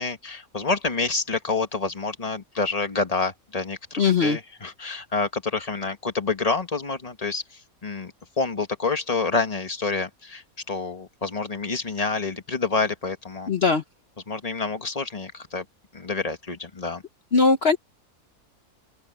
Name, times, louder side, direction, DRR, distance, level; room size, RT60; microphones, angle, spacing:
voice 1, 0.0-13.5 14.3-15.6 15.9-17.0, left 4 dB, 25° left, 1.5 m, -28 dB
voice 2, 4.0-4.4 13.5-13.8 17.3-17.8, left 4 dB, 50° left, 1.2 m, -19 dB
open air
omnidirectional pair, 1.5 m